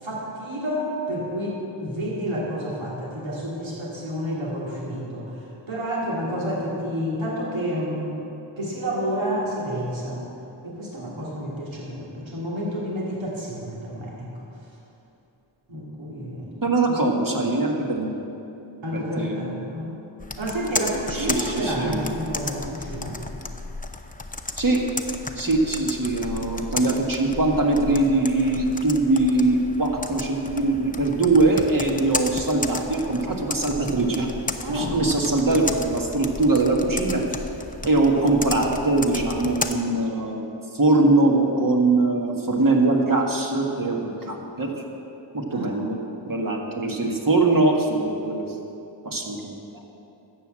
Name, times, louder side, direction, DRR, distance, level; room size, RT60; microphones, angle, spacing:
voice 1, 0.0-5.4 5.7-8.1 8.6-10.2 10.6-14.3 15.7-16.5 16.9-17.0 18.8-20.0 20.4-23.2 34.6-35.0 38.2-38.3 45.5-45.8, equal, 80° right, -5 dB, 2.6 m, -29 dB
voice 2, 16.6-18.2 18.9-19.7 21.1-22.1 24.6-24.8 25.4-34.3 34.7-37.2 37.8-44.7 45.3-46.0 46.3-48.6 49.1-49.8, right 2 dB, 45° right, 0 dB, 1.9 m, -22 dB
Computer keyboard, 20.2-39.7, left 2 dB, 20° left, 0.8 m, -34 dB
12.5 x 8.2 x 7.6 m, 2.9 s
wide cardioid pair, 60°, 46 cm